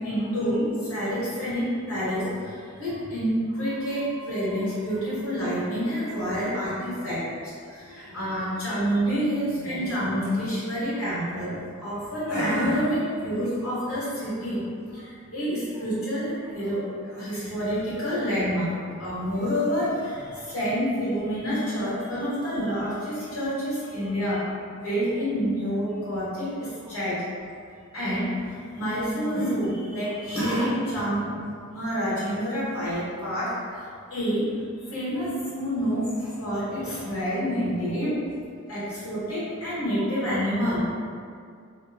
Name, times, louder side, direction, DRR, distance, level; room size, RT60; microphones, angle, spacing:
voice 1, 0.0-14.6 14.9-27.2 27.9-31.4 31.7-34.5 34.8-38.2 38.7-40.8, equal, 85° left, -11 dB, 1.3 m, -28 dB
2.9 x 2.0 x 3.5 m, 2.2 s
head